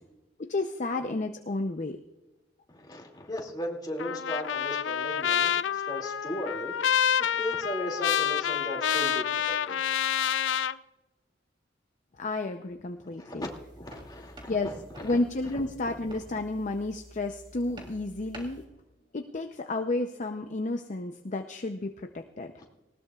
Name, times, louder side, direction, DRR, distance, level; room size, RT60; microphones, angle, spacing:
voice 1, 0.4-2.0 12.2-13.5 14.5-14.7 15.0-18.7 19.1-22.5, left 2 dB, 40° left, 6 dB, 0.7 m, -31 dB
voice 2, 2.7-6.7 7.2-9.8 13.0-14.8 15.1-15.2 15.5-15.6 22.6-22.7, left 1 dB, 25° left, 0 dB, 2.5 m, -37 dB
Trumpet, 4.0-10.7, left 9 dB, 85° left, 0.4 m, -28 dB
sound 1, 13.4-18.7, right 1 dB, 25° right, 3.1 m, -49 dB
19.5 x 17.5 x 2.4 m, 1.1 s
head